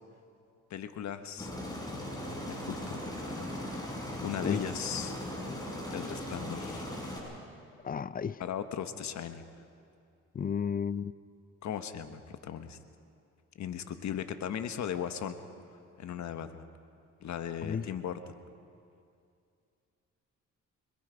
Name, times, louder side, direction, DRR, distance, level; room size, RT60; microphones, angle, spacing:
voice 1, 0.7-1.5 2.4-3.0 4.2-5.1 5.9-6.9 8.4-9.4 11.6-12.8 13.5-15.4 16.0-16.7 17.2-18.3, left 9 dB, 65° left, 1.3 m, -37 dB
Aircraft, 1.4-7.2, left 1 dB, 15° left, 6.1 m, -38 dB
voice 2, 7.8-8.4 10.3-11.1 17.6-17.9, left 7 dB, 30° left, 0.5 m, -32 dB
26.0 x 22.5 x 5.1 m
cardioid pair, 90°, 30 cm